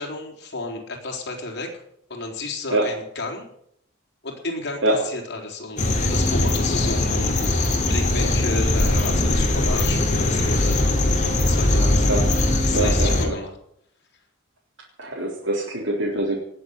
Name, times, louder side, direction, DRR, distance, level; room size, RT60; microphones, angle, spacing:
voice 1, 0.0-1.8 2.1-3.5 4.2-5.8 6.1-10.9 11.2-12.1 12.7-13.5, left 2 dB, 55° left, 1 dB, 4.2 m, -32 dB
sound 1, 5.8-13.3, left 1 dB, 35° left, 3.0 m, -20 dB
voice 2, 11.7-12.3 12.7-13.3 15.0-16.4, right 1 dB, 65° right, -4 dB, 3.8 m, -24 dB
18.5 x 7.6 x 9.7 m, 0.72 s
head